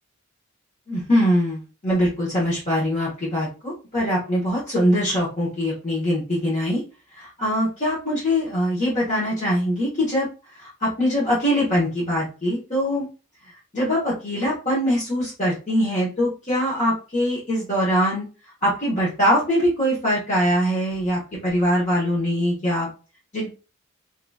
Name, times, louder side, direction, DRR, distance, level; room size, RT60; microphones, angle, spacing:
voice 1, 0.9-6.8 7.1-13.1 13.7-18.3 18.6-22.9 23.3-23.5, equal, 35° left, -7 dB, 1.1 m, -22 dB
3.8 x 2.9 x 2.3 m, 0.34 s
head